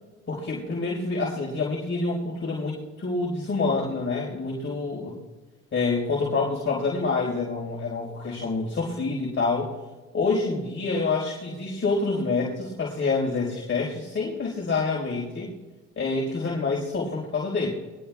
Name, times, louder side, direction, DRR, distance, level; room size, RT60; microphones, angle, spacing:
voice 1, 0.3-5.2 5.7-9.7 10.1-15.5 16.0-17.7, left 3 dB, 35° left, -3 dB, 4.8 m, -27 dB
27.0 x 21.5 x 2.4 m, 1.3 s
cardioid pair, 110°, 33 cm